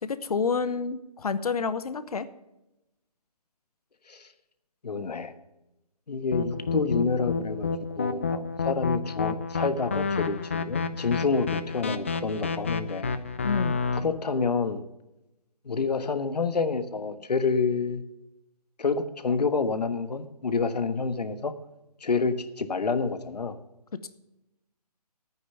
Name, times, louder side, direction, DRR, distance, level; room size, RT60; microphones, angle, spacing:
voice 1, 0.0-2.3 13.4-13.8, left 5 dB, 65° left, 13 dB, 0.9 m, -28 dB
voice 2, 4.8-5.3 6.1-7.7 8.0-13.1 13.9-14.8 15.6-18.0 18.8-21.5 22.0-23.5, left 4 dB, 80° left, 11 dB, 1.4 m, -28 dB
sound 1, 6.3-14.0, left 5 dB, 20° left, 0.4 m, -29 dB
10.0 x 9.2 x 6.9 m, 0.94 s
hypercardioid pair, 160°, 20 cm